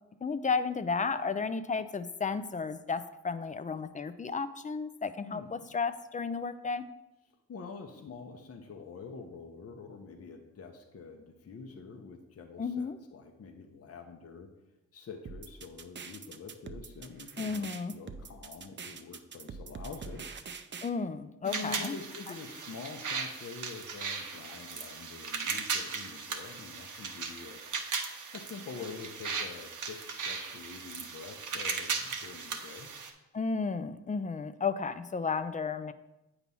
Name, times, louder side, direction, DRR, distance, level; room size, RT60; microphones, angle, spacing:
voice 1, 0.2-6.9 12.6-13.0 17.4-18.0 20.8-22.0 33.3-35.9, left 5 dB, 25° left, 11 dB, 0.4 m, -33 dB
voice 2, 7.5-14.5 14.9-17.7 17.9-20.3 21.4-27.6 28.3-32.9, left 4 dB, 50° left, 4 dB, 0.7 m, -46 dB
sound 1, 15.3-20.9, right 5 dB, 35° right, 0.5 m, -44 dB
sound 2, 21.5-33.1, right 5 dB, 70° right, 0.9 m, -37 dB
8.1 x 3.0 x 5.4 m, 0.98 s
cardioid pair, 75°, 32 cm